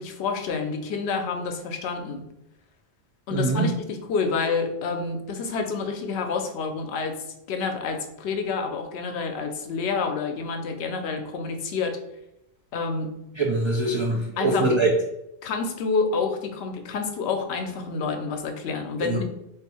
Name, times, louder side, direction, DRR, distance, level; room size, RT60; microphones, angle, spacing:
voice 1, 0.0-2.3 3.3-12.0 12.7-13.1 14.4-14.7 15.4-19.2, left 4 dB, 80° left, 5 dB, 0.8 m, -28 dB
voice 2, 3.3-3.7 13.4-14.9 19.0-19.2, right 2 dB, 50° right, -1 dB, 0.3 m, -23 dB
2.6 x 2.5 x 4.1 m, 0.86 s
omnidirectional pair, 1.1 m